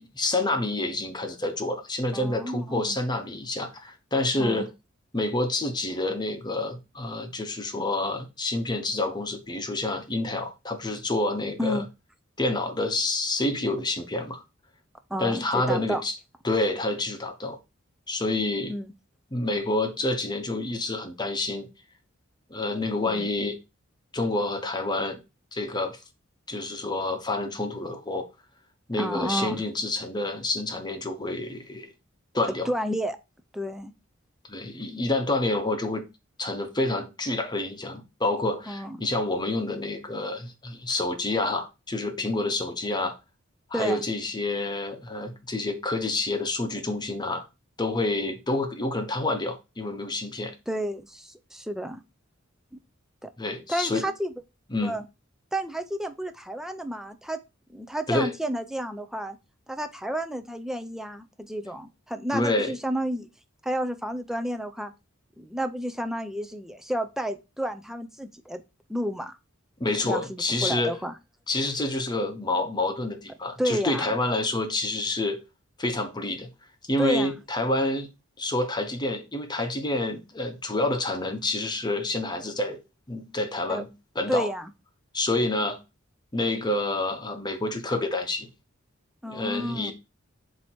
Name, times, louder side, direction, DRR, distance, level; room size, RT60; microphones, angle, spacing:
voice 1, 0.0-4.7 5.1-11.8 12.4-14.4 15.2-16.2 16.4-17.6 18.1-18.7 19.3-21.7 22.5-23.6 24.1-25.2 25.5-26.0 26.5-28.2 28.9-31.9 32.3-32.7 34.5-36.0 36.4-43.2 43.7-47.4 47.8-50.5 53.4-54.1 54.7-55.0 58.1-58.3 62.3-62.8 69.8-71.0 71.5-75.4 75.8-76.5 76.9-78.1 78.4-82.8 83.1-84.5 85.1-85.8 86.3-88.5 89.3-89.9, left 2 dB, 20° left, 1.0 m, -28 dB
voice 2, 2.1-3.0 4.4-4.6 11.6-11.9 15.1-16.0 18.7-18.9 23.1-23.3 29.0-29.6 32.5-33.2 33.5-33.9 38.7-39.0 43.7-44.0 50.7-52.0 53.2-53.3 53.7-54.3 54.8-55.0 55.5-57.4 57.7-59.4 59.7-63.3 63.6-64.9 65.4-68.6 68.9-69.4 70.0-71.1 73.6-74.2 77.0-77.3 83.7-83.8 84.3-84.7 89.2-89.9, equal, ahead, 0.6 m, -31 dB
7.4 x 2.9 x 4.6 m
head